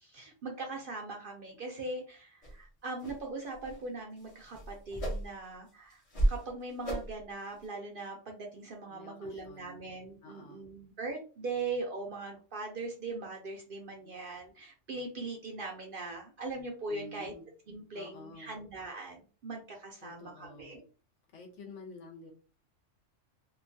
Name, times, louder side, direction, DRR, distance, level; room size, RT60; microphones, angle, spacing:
voice 1, 0.0-6.0 6.3-17.3 17.7-20.8, right 3 dB, 55° right, 1 dB, 0.6 m, -40 dB
sound 1, 2.4-2.5 3.0-3.2 3.5-3.8 4.2-5.5 5.9-6.4 6.8-7.2 7.6-7.7, right 1 dB, 35° left, 0.7 m, -33 dB
voice 2, 8.9-9.8 10.2-10.7 14.0-14.1 16.9-17.4 17.9-18.6 20.0-20.8 21.3-22.3, left 2 dB, 70° left, 1 dB, 1.1 m, -50 dB
2.8 x 2.2 x 2.6 m, 0.36 s
omnidirectional pair, 1.3 m